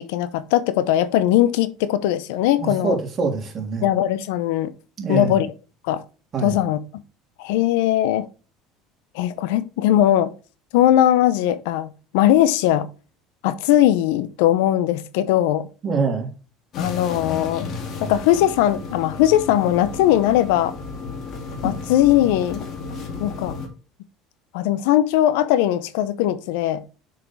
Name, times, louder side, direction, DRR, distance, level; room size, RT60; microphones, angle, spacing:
voice 1, 0.0-3.0 3.8-4.7 5.1-5.5 5.8-6.0 6.4-6.8 7.4-8.3 9.1-10.3 10.7-12.9 13.4-15.7 16.8-17.7 18.0-20.7 21.6-22.6 23.2-23.6 24.5-26.8, left 12 dB, 80° left, 0.7 m, -19 dB
voice 2, 2.6-3.9 5.0-5.4 6.3-6.6 15.8-16.3, right 4 dB, 35° right, 3.1 m, -24 dB
sound 1, 16.7-23.7, left 4 dB, 50° left, 2.1 m, -33 dB
6.4 x 5.8 x 4.6 m
supercardioid pair, 105°, 0 cm